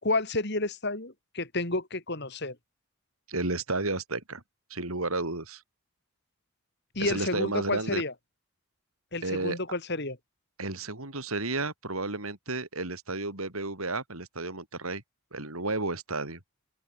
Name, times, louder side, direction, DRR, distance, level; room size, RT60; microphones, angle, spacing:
voice 1, 0.0-2.6 6.9-8.1 9.1-10.2, left 2 dB, 50° left, 4.0 m, -30 dB
voice 2, 3.3-4.4 4.7-5.6 7.0-8.0 9.2-9.6 10.6-15.0 15.3-16.4, right 2 dB, 85° right, 5.7 m, -32 dB
open air
head